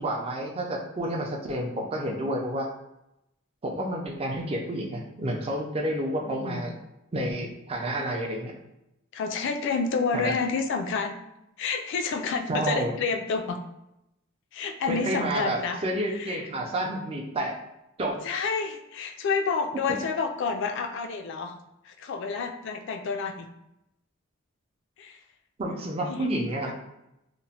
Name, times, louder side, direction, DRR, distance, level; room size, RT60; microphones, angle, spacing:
voice 1, 0.0-2.7 3.6-6.7 7.1-8.5 10.1-10.3 12.5-12.9 14.9-17.5 18.0-18.2 25.6-26.7, right 1 dB, 30° right, 0 dB, 0.4 m, -30 dB
voice 2, 6.2-6.7 9.1-11.1 11.6-13.6 14.5-15.8 16.2-16.4 18.2-21.6 21.9-23.5 25.0-25.2 25.7-26.7, left 5 dB, 60° left, 6 dB, 0.3 m, -29 dB
2.9 x 2.0 x 2.7 m, 0.87 s
head